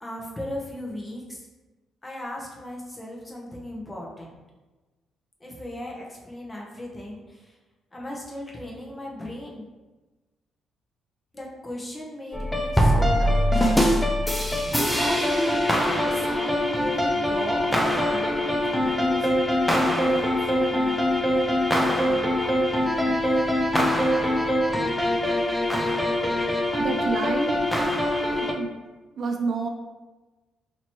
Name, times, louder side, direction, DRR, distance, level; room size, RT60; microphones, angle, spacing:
voice 1, 0.0-1.5 2.0-4.4 5.4-7.6 7.9-9.6 11.3-13.5 14.8-19.4 20.0-22.7 23.0-23.4, left 1 dB, 20° left, -2 dB, 1.0 m, -37 dB
sound 1, 12.3-28.5, left 1 dB, 5° left, 0.5 m, -23 dB
voice 2, 26.8-27.6 28.4-28.7 29.2-29.7, right 4 dB, 55° right, 3 dB, 0.5 m, -28 dB
3.0 x 2.9 x 4.4 m, 1.2 s
cardioid pair, 90°, 0 cm